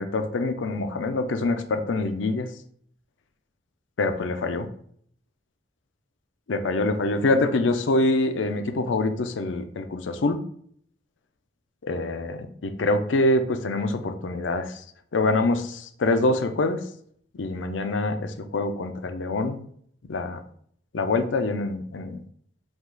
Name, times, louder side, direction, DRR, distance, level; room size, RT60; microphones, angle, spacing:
voice 1, 0.0-2.5 4.0-4.7 6.5-10.4 11.8-14.8 15.1-16.8 17.4-19.6 20.1-20.4 20.9-22.2, left 2 dB, 75° left, 8 dB, 0.5 m, -25 dB
4.9 x 2.4 x 3.8 m, 0.63 s
head